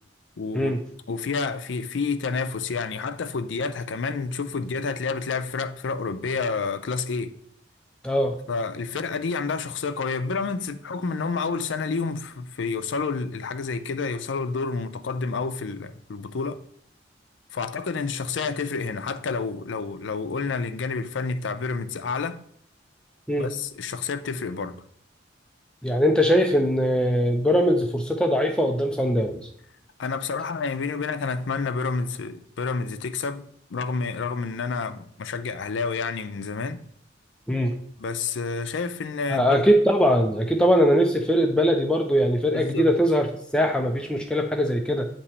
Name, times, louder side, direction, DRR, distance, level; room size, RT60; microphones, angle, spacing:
voice 1, 0.4-0.7 1.1-7.3 8.5-16.6 17.5-22.4 23.4-24.8 30.0-36.8 38.0-39.6 42.5-42.9, left 4 dB, 70° left, 0.5 m, -29 dB
voice 2, 8.0-8.3 23.3-23.5 25.8-29.5 37.5-37.7 39.3-43.3 43.5-45.1, equal, 5° left, 0.4 m, -21 dB
8.5 x 3.0 x 4.2 m
head